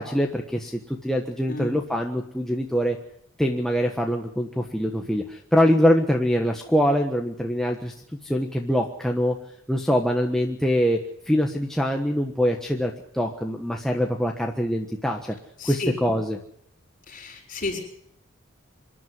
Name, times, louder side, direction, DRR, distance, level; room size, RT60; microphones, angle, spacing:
voice 1, 0.0-3.0 3.4-7.9 8.2-9.3 9.7-11.0 11.3-15.3 15.6-16.4, equal, ahead, 1 dB, 1.4 m, -24 dB
voice 2, 15.6-15.9 17.1-17.8, left 2 dB, 40° left, 4 dB, 6.6 m, -31 dB
26.5 x 11.0 x 9.7 m, 0.71 s
head